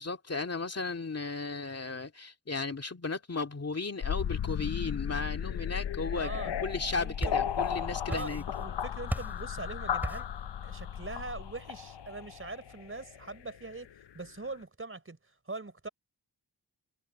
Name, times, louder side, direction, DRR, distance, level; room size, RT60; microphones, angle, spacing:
voice 1, 0.0-6.3 6.6-8.4, left 4 dB, 35° left, 2.4 m, -35 dB
sound 1, 4.0-14.0, left 8 dB, 80° left, 0.8 m, -35 dB
voice 2, 6.1-6.5 7.0-7.4 8.1-10.3 10.6-13.9 14.1-15.2 15.5-15.9, right 3 dB, 30° right, 3.9 m, -42 dB
sound 2, 6.8-7.8 8.1-8.7 9.1-9.5 10.0-10.4, equal, 5° right, 4.5 m, -36 dB
wide cardioid pair, 105°, 41 cm